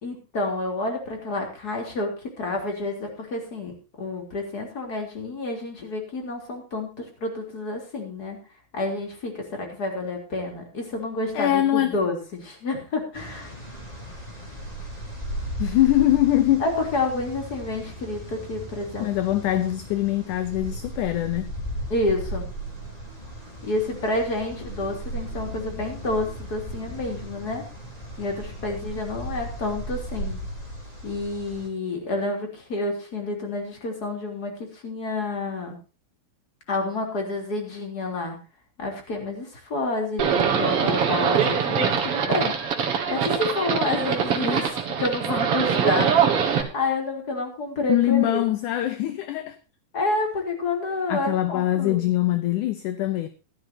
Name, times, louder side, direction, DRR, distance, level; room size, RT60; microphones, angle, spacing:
voice 1, 0.0-8.4 8.7-13.5 16.6-19.1 19.5-19.6 21.9-22.5 23.6-27.6 28.2-30.4 31.0-35.8 36.7-38.4 38.8-48.4 49.9-52.0, left 2 dB, 25° left, 3.6 m, -29 dB
voice 2, 11.3-12.0 15.6-16.7 19.0-21.5 47.9-49.6 51.1-53.3, left 14 dB, 70° left, 2.1 m, -23 dB
sound 1, 13.1-31.7, right 1 dB, 10° left, 3.1 m, -36 dB
Livestock farm animals working animals, 40.2-46.6, right 7 dB, 50° right, 2.3 m, -23 dB
16.0 x 12.5 x 2.8 m
omnidirectional pair, 4.1 m